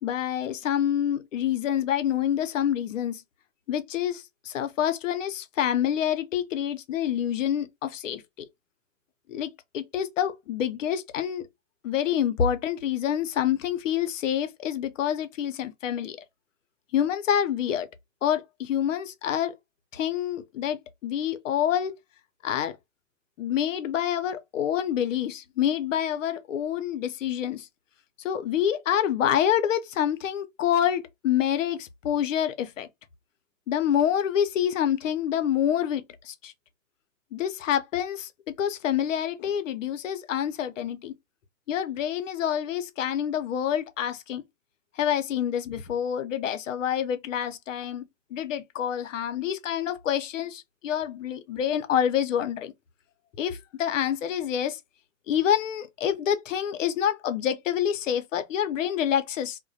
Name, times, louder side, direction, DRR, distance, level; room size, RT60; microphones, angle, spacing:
voice 1, 0.0-3.2 3.7-8.5 9.3-11.5 11.8-16.2 16.9-17.9 18.2-19.5 19.9-21.9 22.4-22.8 23.4-27.7 28.2-32.9 33.7-36.5 37.3-38.3 38.6-41.1 41.7-44.4 45.0-48.0 48.3-52.7 53.4-54.8 55.3-59.6, left 9 dB, 85° left, 0.6 m, -27 dB
2.3 x 2.1 x 2.5 m
hypercardioid pair, 120°, 37 cm